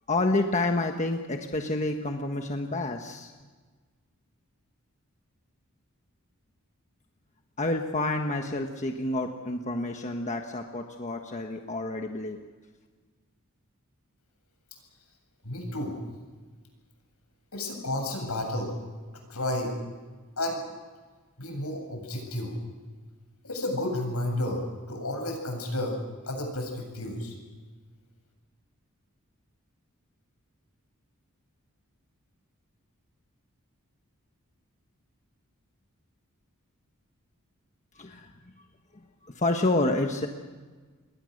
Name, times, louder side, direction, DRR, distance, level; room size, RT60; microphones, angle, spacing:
voice 1, 0.1-3.3 7.6-12.4 37.9-38.3 39.2-40.3, left 2 dB, 35° left, 4 dB, 1.3 m, -29 dB
voice 2, 15.4-16.0 17.5-18.7 19.3-19.7 20.4-20.6 21.4-22.6 23.4-26.0 26.3-27.3, left 1 dB, 80° left, 3 dB, 7.7 m, -31 dB
28.5 x 22.0 x 6.6 m, 1.4 s
head